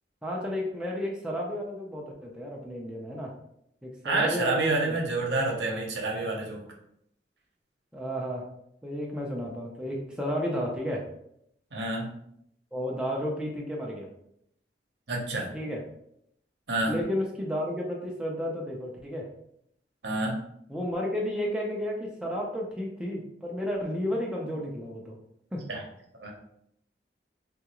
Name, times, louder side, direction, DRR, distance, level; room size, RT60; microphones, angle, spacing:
voice 1, 0.2-3.3 3.8-5.0 7.9-8.5 8.8-11.1 12.7-14.1 15.5-15.8 16.9-19.3 20.7-25.2 25.5-25.6, equal, 5° right, -2 dB, 0.5 m, -32 dB
voice 2, 4.0-6.6 11.7-12.1 15.1-15.5 16.7-17.0 20.0-20.4 25.7-25.8 26.2-26.3, right 2 dB, 75° right, 0 dB, 0.8 m, -28 dB
3.8 x 2.4 x 2.9 m, 0.73 s
head